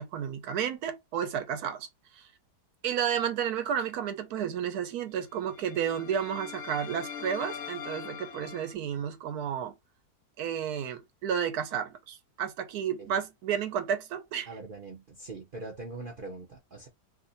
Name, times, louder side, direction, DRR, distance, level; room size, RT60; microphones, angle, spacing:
voice 1, 0.0-1.9 2.1-2.2 2.8-9.7 10.4-14.5, right 8 dB, 70° right, 1.1 m, -32 dB
sound 1, 5.4-8.7, left 6 dB, 70° left, 0.6 m, -41 dB
voice 2, 14.5-16.9, right 3 dB, 50° right, 0.6 m, -42 dB
2.7 x 2.5 x 3.9 m
omnidirectional pair, 1.8 m